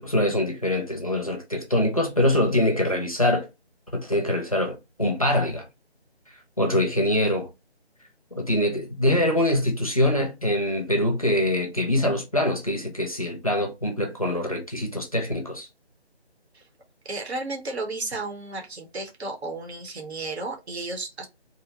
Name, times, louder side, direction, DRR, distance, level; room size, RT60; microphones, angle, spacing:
voice 1, 0.0-3.5 3.9-5.7 6.6-7.5 8.3-15.7, left 1 dB, 35° left, 0.5 m, -24 dB
voice 2, 17.0-21.3, right 2 dB, 75° right, 0.9 m, -33 dB
2.7 x 2.1 x 2.6 m
figure-of-eight pair, 165°, 33 cm